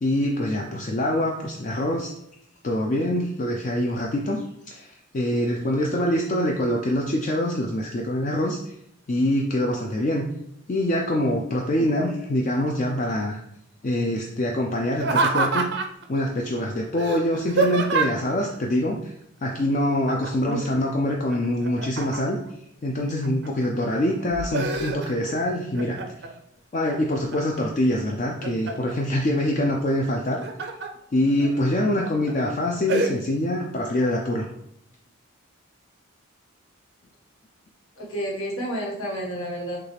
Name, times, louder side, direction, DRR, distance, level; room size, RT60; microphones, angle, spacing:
voice 1, 0.0-2.1 2.6-8.7 9.1-10.3 10.7-13.4 13.8-15.7 16.1-19.1 19.4-22.4 22.8-26.0 26.7-30.4 31.1-34.5, left 1 dB, 35° left, 0 dB, 0.4 m, -25 dB
Laughter, 14.9-16.0 17.0-18.3 20.1-20.5 20.9-22.5 23.0-23.7 24.1-25.4 25.7-26.3 26.8-27.6 28.1-28.9 30.1-30.9 31.4-31.5 32.0-32.3 32.9-33.1, right 3 dB, 55° right, 0.5 m, -26 dB
voice 2, 38.0-39.8, equal, 85° left, -3 dB, 1.6 m, -30 dB
6.6 x 2.4 x 3.3 m, 0.74 s
head